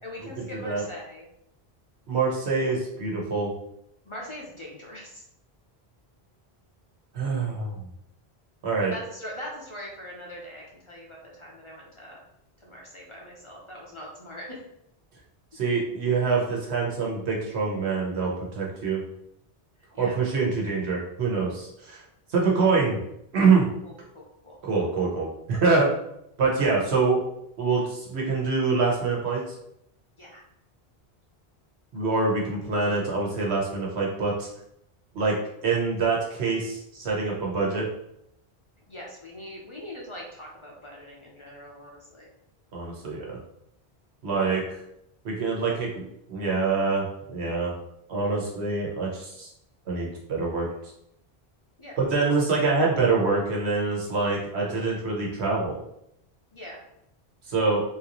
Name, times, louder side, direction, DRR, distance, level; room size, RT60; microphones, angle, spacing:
voice 1, 0.0-1.3 4.1-5.2 8.9-12.2 12.6-14.6 19.9-20.2 23.8-24.6 30.2-30.4 38.9-42.3 48.2-48.4 51.8-52.4 56.5-56.8, left 1 dB, 35° left, -3 dB, 0.6 m, -42 dB
voice 2, 0.5-0.8 2.1-3.5 7.1-7.7 8.6-8.9 15.5-19.0 20.0-22.0 22.3-23.0 23.3-23.7 24.6-25.9 26.4-27.2 27.6-29.4 31.9-34.5 35.1-35.4 35.6-37.8 42.7-43.4 44.2-44.6 45.2-46.0 46.3-47.7 48.1-49.5 49.9-50.7 52.0-55.8 57.5-57.8, right 4 dB, 85° right, -2 dB, 1.2 m, -25 dB
3.7 x 2.6 x 2.9 m, 0.77 s
omnidirectional pair, 1.1 m